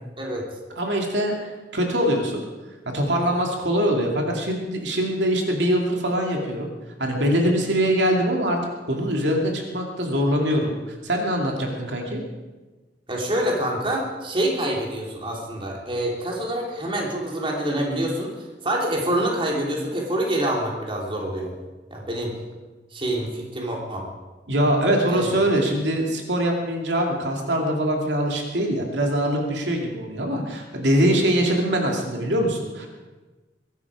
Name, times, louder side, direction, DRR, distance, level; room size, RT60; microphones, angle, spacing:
voice 1, 0.8-1.3 1.7-2.4 2.9-6.7 7.0-8.6 8.9-12.2 24.5-32.9, equal, 85° right, 1 dB, 2.6 m, -23 dB
voice 2, 13.1-18.3 18.6-21.5 21.9-22.3 22.9-24.0 25.1-25.3, right 1 dB, 30° right, -1 dB, 3.2 m, -26 dB
22.0 x 12.0 x 4.9 m, 1.2 s
head